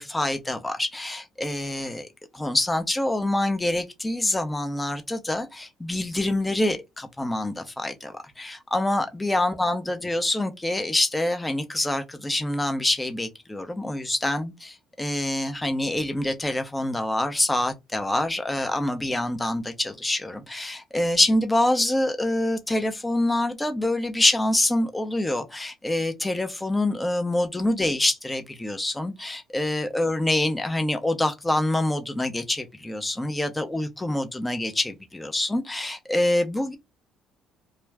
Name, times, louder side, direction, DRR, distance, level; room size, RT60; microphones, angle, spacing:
voice 1, 0.0-2.1 2.3-36.8, left 1 dB, 10° left, 0.7 m, -26 dB
2.4 x 2.2 x 3.2 m
supercardioid pair, 75°, 0 cm